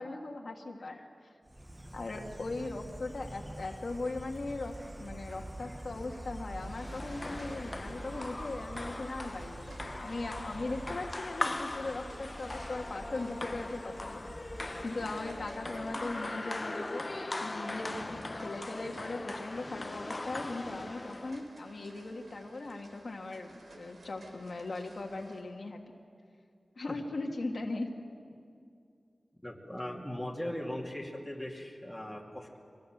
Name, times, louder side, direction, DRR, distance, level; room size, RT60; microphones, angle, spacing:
voice 1, 0.0-1.3 1.9-14.2 14.8-17.1 17.4-25.8 26.8-27.9, left 2 dB, 70° left, 2 dB, 1.6 m, -39 dB
Insect, 1.5-16.6, right 1 dB, 10° right, 0.8 m, -46 dB
sound 1, 6.5-25.4, right 2 dB, 85° right, 2.9 m, -56 dB
sound 2, 6.6-21.5, left 2 dB, 35° left, 0.5 m, -40 dB
voice 2, 29.4-32.6, left 1 dB, 5° left, -2 dB, 2.5 m, -39 dB
24.0 x 18.0 x 7.9 m, 2.4 s
wide cardioid pair, 85°, 0 cm